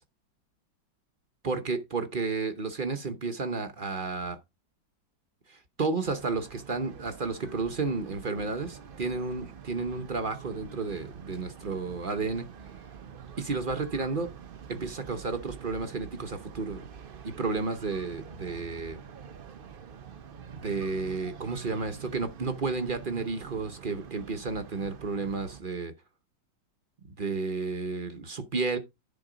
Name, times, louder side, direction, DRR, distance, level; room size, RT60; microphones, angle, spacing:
voice 1, 1.4-4.4 5.5-12.5 13.4-14.3 14.7-16.9 17.2-19.0 20.5-25.9 27.0-28.8, right 4 dB, 40° right, 0.8 m, -32 dB
sound 1, 6.0-25.6, right 8 dB, 70° right, 0.5 m, -46 dB
10.5 x 3.9 x 5.0 m
omnidirectional pair, 2.0 m